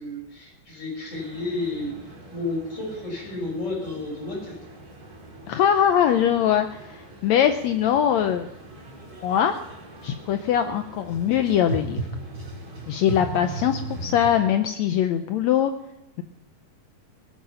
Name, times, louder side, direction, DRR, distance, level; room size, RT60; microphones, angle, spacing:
voice 1, 0.0-1.9 2.3-4.5, left 2 dB, 20° left, -2 dB, 6.4 m, -31 dB
sound 1, 1.1-14.4, right 2 dB, 30° right, 2.5 m, -39 dB
voice 2, 5.5-8.5 9.2-9.6 10.0-12.0 12.9-15.7, left 9 dB, 85° left, 8 dB, 1.5 m, -22 dB
18.5 x 10.0 x 5.6 m, 0.86 s
omnidirectional pair, 3.9 m